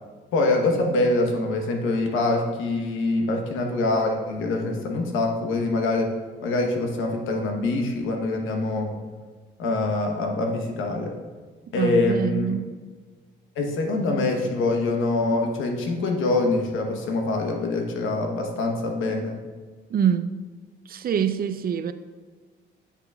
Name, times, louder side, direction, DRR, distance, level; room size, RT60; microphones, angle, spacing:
voice 1, 0.3-6.1 6.4-8.9 9.6-11.2 11.7-12.5 13.6-19.4, left 2 dB, 85° left, 1.1 m, -24 dB
voice 2, 11.8-12.7 19.9-20.4 20.9-21.9, right 8 dB, 50° right, 0.4 m, -25 dB
9.9 x 5.9 x 2.3 m
cardioid pair, 90°, 20 cm